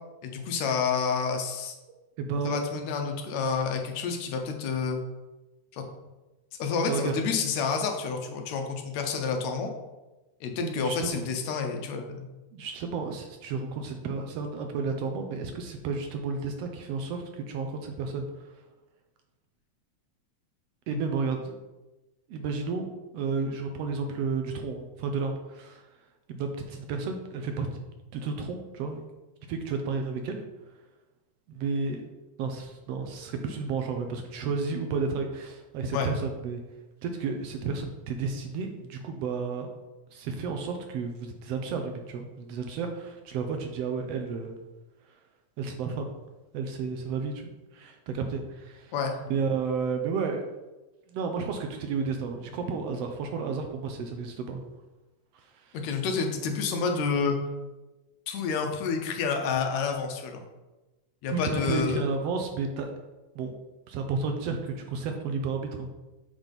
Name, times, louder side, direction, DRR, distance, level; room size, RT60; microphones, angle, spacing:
voice 1, 0.2-1.8 2.4-5.0 5.7-5.8 6.6-9.7 10.4-12.3 20.9-21.0 35.9-36.1 48.9-49.1 55.7-57.4 58.3-60.4 61.2-62.0, left 5 dB, 75° left, 4 dB, 2.0 m, -29 dB
voice 2, 2.2-2.6 6.9-7.2 10.6-11.2 12.5-18.5 20.9-21.6 22.3-22.9 23.1-25.9 26.3-27.8 28.1-29.0 29.5-30.4 31.5-32.1 32.4-36.6 37.0-39.7 40.1-44.6 45.1-45.2 45.6-46.1 46.5-48.9 49.3-50.4 51.1-54.6 55.3-55.8 61.3-62.9 63.3-63.5 63.9-65.9, right 4 dB, 75° right, 5 dB, 1.5 m, -32 dB
7.2 x 3.9 x 5.2 m, 1.1 s
omnidirectional pair, 3.3 m